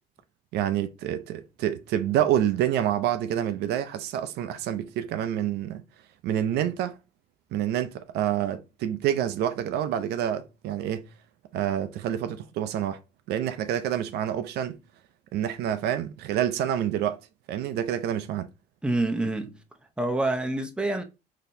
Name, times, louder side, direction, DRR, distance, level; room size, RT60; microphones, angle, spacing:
voice 1, 0.5-5.8 6.2-7.0 7.5-11.1 11.5-13.0 13.3-14.8 15.3-17.2 17.5-18.5, right 10 dB, 75° right, 0.5 m, -27 dB
voice 2, 18.8-19.6 20.0-21.0, right 2 dB, 5° right, 0.6 m, -27 dB
3.9 x 2.8 x 2.6 m
cardioid pair, 110°, 17 cm